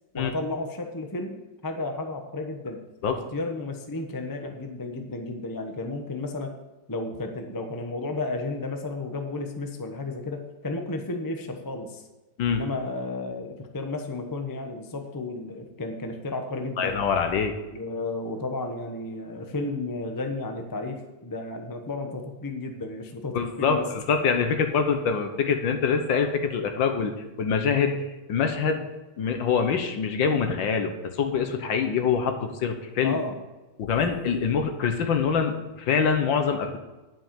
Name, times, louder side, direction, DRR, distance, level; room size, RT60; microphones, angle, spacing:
voice 1, 0.1-2.8 3.1-6.6 6.9-12.0 12.5-17.0 17.7-23.9 33.0-33.4, left 2 dB, 25° left, 4 dB, 0.4 m, -33 dB
voice 2, 16.8-17.5 23.3-27.1 27.4-28.9 29.2-33.2 33.8-36.8, left 6 dB, 65° left, 6 dB, 1.7 m, -25 dB
10.0 x 5.8 x 7.5 m, 1.1 s
omnidirectional pair, 2.3 m